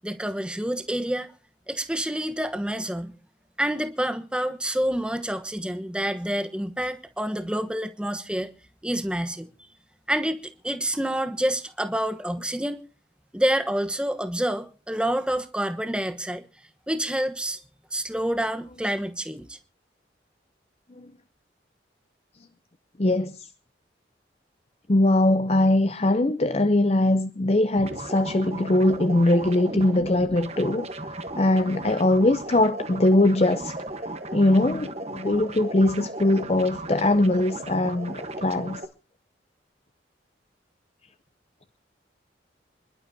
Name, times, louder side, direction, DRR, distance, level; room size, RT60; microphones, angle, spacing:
voice 1, 0.0-1.3 1.7-3.1 3.6-8.5 8.8-9.5 10.1-10.4 10.6-12.8 13.3-16.4 16.9-17.6 17.9-19.6, right 1 dB, 5° right, 1.1 m, -28 dB
voice 2, 23.0-23.5 24.9-30.9 31.4-33.7 34.3-38.8, left 1 dB, 35° left, 0.6 m, -21 dB
sound 1, 27.8-38.9, right 1 dB, 35° right, 1.2 m, -36 dB
27.0 x 11.5 x 2.8 m
head